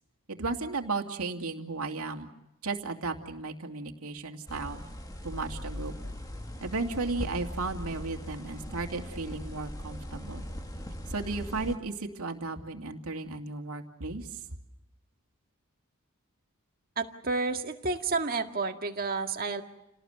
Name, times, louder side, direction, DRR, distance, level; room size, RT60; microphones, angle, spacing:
voice 1, 0.3-2.3 2.6-4.8 5.2-5.9 6.6-10.5 11.1-14.4, right 3 dB, 85° right, 4 dB, 2.6 m, -34 dB
sound 1, 4.5-11.8, equal, 15° left, 1.8 m, -40 dB
voice 2, 17.0-19.6, right 4 dB, 40° right, 4 dB, 2.0 m, -30 dB
29.5 x 18.5 x 8.0 m, 0.94 s
head